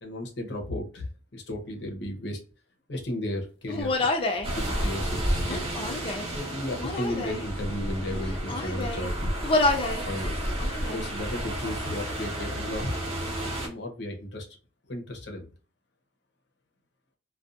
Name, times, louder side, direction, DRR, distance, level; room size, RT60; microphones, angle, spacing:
voice 1, 0.0-2.4 2.9-4.1 4.5-5.8 6.3-9.3 10.1-13.0 13.6-14.5 14.9-15.5, left 1 dB, 75° left, 3 dB, 0.8 m, -34 dB
Human voice, 3.7-4.5 5.4-6.3 6.8-7.4 8.1-9.1 9.4-10.0 10.4-11.1, left 2 dB, 30° left, 0.4 m, -28 dB
sound 1, 4.4-13.7, right 1 dB, 35° right, 0.7 m, -32 dB
2.5 x 2.3 x 2.4 m, 0.36 s
head